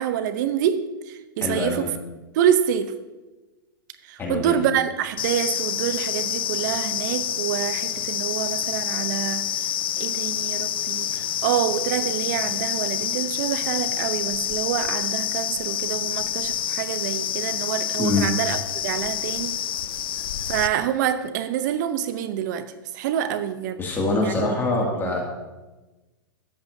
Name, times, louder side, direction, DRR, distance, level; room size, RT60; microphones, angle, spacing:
voice 1, 0.0-2.0 2.3-2.9 4.1-9.7 10.0-19.6 20.5-22.7 22.9-23.8 24.2-24.5 24.8-25.1, right 10 dB, 55° right, 11 dB, 0.8 m, -26 dB
voice 2, 1.4-1.9 4.2-4.5 18.0-18.3 23.8-25.2, left 2 dB, 20° left, -1 dB, 2.3 m, -24 dB
sound 1, 5.2-20.7, left 10 dB, 80° left, 0.4 m, -27 dB
13.0 x 8.0 x 2.7 m, 1.1 s
hypercardioid pair, 120°, 12 cm